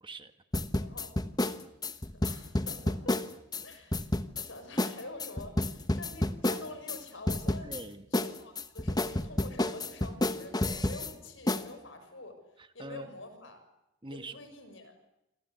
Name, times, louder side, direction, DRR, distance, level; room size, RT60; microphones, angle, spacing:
voice 1, 0.0-0.3 7.6-8.1 12.6-13.1 14.0-14.4, right 2 dB, 25° right, 9 dB, 1.7 m, -43 dB
sound 1, 0.5-3.6 3.9-4.5 4.8-4.9 5.2-7.0 7.3-7.8 8.1-11.1 11.5-11.7, left 1 dB, 20° left, 1.2 m, -30 dB
voice 2, 0.8-1.2 2.0-3.2 3.6-4.1 4.4-7.7 8.1-12.4 12.7-13.6 14.1-15.0, left 2 dB, 75° left, 8 dB, 6.8 m, -47 dB
27.5 x 26.0 x 8.3 m, 0.89 s
head